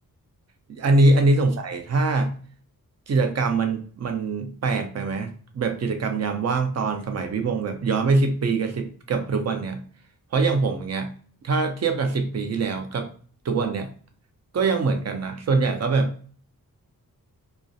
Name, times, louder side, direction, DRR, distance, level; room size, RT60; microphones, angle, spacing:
voice 1, 0.7-2.3 3.1-9.8 10.3-11.1 11.4-13.1 13.4-13.9 14.5-16.3, right 3 dB, 50° right, 6 dB, 0.5 m, -23 dB
2.4 x 2.0 x 2.6 m, 0.44 s
wide cardioid pair, 170°, 35 cm